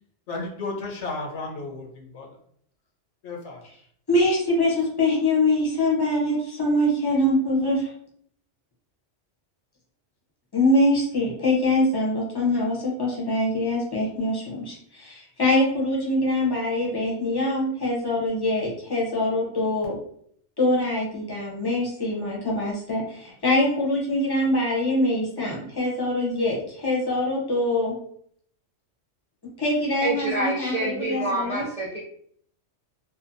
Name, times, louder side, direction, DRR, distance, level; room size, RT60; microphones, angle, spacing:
voice 1, 0.3-2.3 3.2-3.6, left 3 dB, 75° left, 0 dB, 0.9 m, -33 dB
voice 2, 4.1-7.9 10.5-20.0 20.6-27.9 29.6-31.7, left 1 dB, 25° left, -3 dB, 0.6 m, -24 dB
voice 3, 30.0-32.0, right 2 dB, 50° right, -7 dB, 0.4 m, -27 dB
2.7 x 2.2 x 2.5 m, 0.66 s
omnidirectional pair, 1.2 m